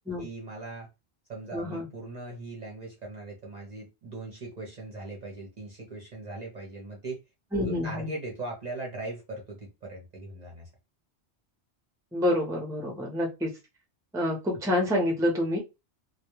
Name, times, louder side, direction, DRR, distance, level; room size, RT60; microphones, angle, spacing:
voice 1, 0.2-0.9 1.3-7.2 7.6-10.7, right 2 dB, 45° right, 0.7 m, -39 dB
voice 2, 1.5-1.9 7.5-8.1 12.1-13.5 14.1-15.6, left 1 dB, 5° right, 0.6 m, -27 dB
2.2 x 2.2 x 3.0 m
omnidirectional pair, 1.1 m